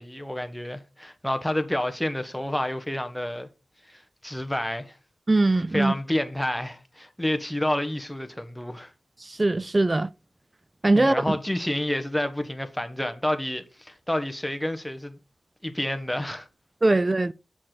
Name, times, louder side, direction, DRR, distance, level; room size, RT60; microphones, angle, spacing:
voice 1, 0.0-3.5 3.9-4.9 5.7-8.9 10.9-15.2 15.6-16.5, left 1 dB, 5° left, 1.3 m, -29 dB
voice 2, 5.3-5.9 9.2-10.1 10.8-11.2 16.8-17.3, right 2 dB, 30° right, 0.4 m, -21 dB
7.5 x 6.2 x 4.0 m
cardioid pair, 65°, 0 cm